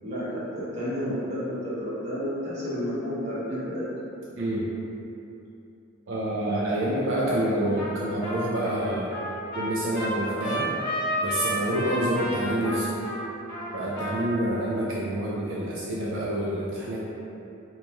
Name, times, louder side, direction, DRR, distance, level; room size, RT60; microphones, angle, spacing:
voice 1, 0.0-3.9, equal, 30° right, -9 dB, 0.8 m, -31 dB
voice 2, 4.4-4.7 6.1-9.1 9.5-10.7 11.2-12.9 13.7-17.0, right 1 dB, 65° right, -6 dB, 0.4 m, -27 dB
Trumpet, 7.8-8.0 8.2-14.4, equal, 20° left, 1.3 m, -31 dB
3.0 x 2.8 x 3.3 m, 2.9 s
head